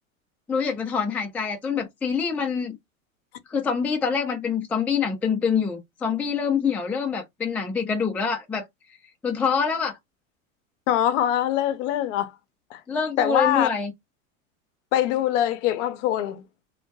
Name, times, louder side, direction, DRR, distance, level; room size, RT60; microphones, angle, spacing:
voice 1, 0.5-2.8 3.5-8.7 9.2-9.9 12.9-13.9, left 6 dB, 5° left, 0.3 m, -25 dB
voice 2, 10.9-12.3 12.7-12.8 13.2-13.7 14.9-16.4, left 11 dB, 60° left, 0.6 m, -23 dB
2.2 x 2.1 x 2.7 m
hypercardioid pair, 95°, 41 cm